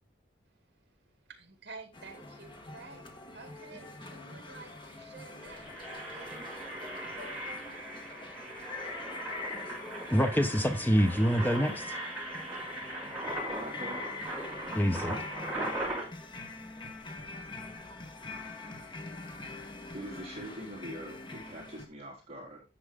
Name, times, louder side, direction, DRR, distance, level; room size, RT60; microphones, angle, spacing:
voice 1, 1.3-3.1 3.3-5.7 6.1-6.3 12.5-12.6, right 3 dB, 65° right, 2.3 m, -50 dB
sound 1, 1.9-21.9, left 3 dB, 25° left, 1.5 m, -43 dB
Engine, 4.6-4.9 5.3-16.0, right 1 dB, 5° right, 6.3 m, -39 dB
voice 2, 10.1-12.0 14.7-15.2, equal, 10° left, 0.9 m, -26 dB
voice 3, 13.5-14.1 19.9-22.6, right 1 dB, 35° right, 3.7 m, -43 dB
10.0 x 7.9 x 3.6 m
head